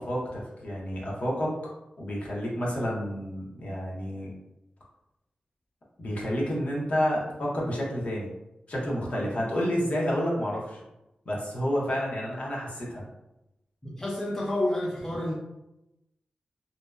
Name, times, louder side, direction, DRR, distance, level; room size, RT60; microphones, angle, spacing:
voice 1, 0.0-1.5 2.0-4.3 6.0-8.3 8.7-10.8 11.3-13.0, equal, 55° left, -4 dB, 0.7 m, -30 dB
voice 2, 13.8-15.3, left 1 dB, 15° left, -5 dB, 0.4 m, -29 dB
2.6 x 2.0 x 2.3 m, 0.91 s
wide cardioid pair, 110°, 3 cm